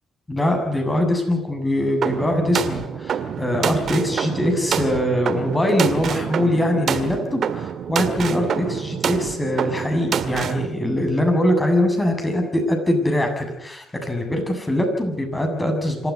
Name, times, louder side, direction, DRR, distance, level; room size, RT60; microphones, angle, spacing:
voice 1, 0.3-16.1, left 1 dB, 15° left, 4 dB, 7.3 m, -22 dB
sound 1, 2.0-10.7, right 8 dB, 60° right, 1.8 m, -27 dB
26.5 x 13.5 x 9.7 m, 0.82 s
cardioid pair, 90°, 0 cm